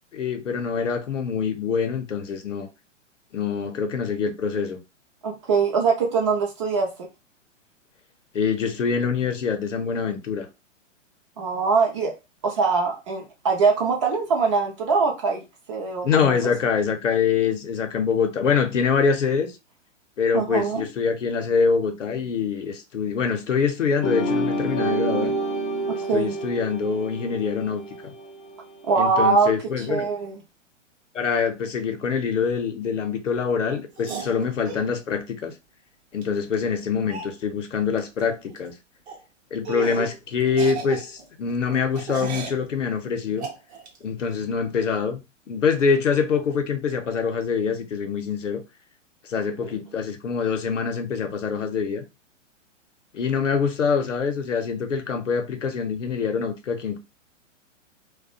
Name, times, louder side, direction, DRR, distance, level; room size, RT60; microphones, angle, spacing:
voice 1, 0.1-2.7 3.3-4.8 8.3-10.5 16.0-19.5 20.2-25.3 25.9-28.1 29.0-30.1 31.1-35.5 36.1-38.7 39.5-43.5 44.0-45.2 45.5-48.6 49.2-52.0 53.1-57.0, left 6 dB, 70° left, 0.7 m, -25 dB
voice 2, 5.2-7.1 11.4-12.1 12.4-16.5 20.3-20.9 25.9-26.4 28.9-29.5 29.9-30.4 49.6-49.8, right 4 dB, 25° right, 0.4 m, -23 dB
sound 1, 24.0-28.7, right 1 dB, 25° left, 0.5 m, -28 dB
sound 2, 34.0-34.8 36.2-36.3 36.5-36.6 37.1-37.3 38.0-38.2 38.5-38.7 39.1-39.2 39.6-40.2 40.5-42.6 43.4-44.0, right 5 dB, 55° right, 0.8 m, -35 dB
2.3 x 2.1 x 2.6 m
figure-of-eight pair, 110°, 38 cm